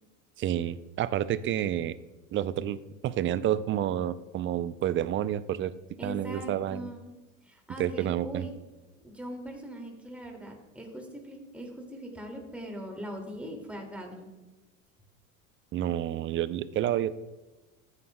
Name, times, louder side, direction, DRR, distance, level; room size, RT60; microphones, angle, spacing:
voice 1, 0.4-2.0 2.3-2.8 3.0-5.7 6.0-6.9 7.8-8.5 15.7-17.1, right 11 dB, 30° right, 16 dB, 0.4 m, -29 dB
voice 2, 6.0-7.1 7.4-8.6 9.0-14.3, equal, 5° right, 1 dB, 2.3 m, -41 dB
14.5 x 9.6 x 2.2 m, 1.1 s
hypercardioid pair, 80°, 41 cm